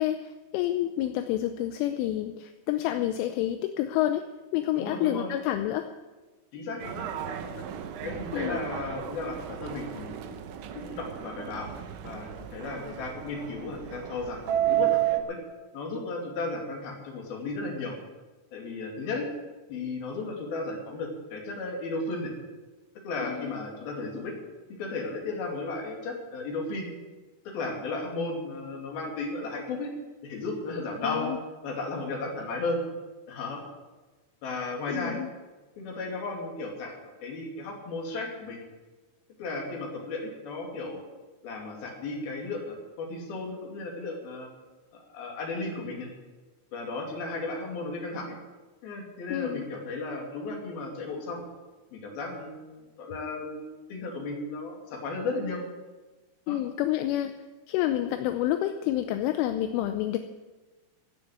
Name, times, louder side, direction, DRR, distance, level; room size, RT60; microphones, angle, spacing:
voice 1, 0.0-4.2 4.5-5.9 8.3-8.6 23.2-23.6 31.0-31.4 34.9-35.3 49.3-49.7 56.5-57.3 57.7-60.2, left 13 dB, 80° left, 7 dB, 3.0 m, -28 dB
voice 2, 4.7-5.3 6.5-7.7 8.0-10.2 10.7-11.7 12.0-15.0 15.3-15.4 15.7-17.9 18.5-19.3 19.7-22.3 23.0-24.3 24.8-26.9 27.5-29.9 30.2-31.3 31.6-32.8 33.3-33.6 34.4-35.2 35.8-38.6 39.4-41.0 41.4-44.5 44.9-46.1 46.7-48.4 48.8-51.4 51.9-55.6 56.5-56.6, left 3 dB, 50° left, 0 dB, 4.0 m, -34 dB
Subway metro underground, 6.8-15.2, right 13 dB, 75° right, 3.1 m, -32 dB
16.5 x 7.0 x 9.4 m, 1.2 s
omnidirectional pair, 6.0 m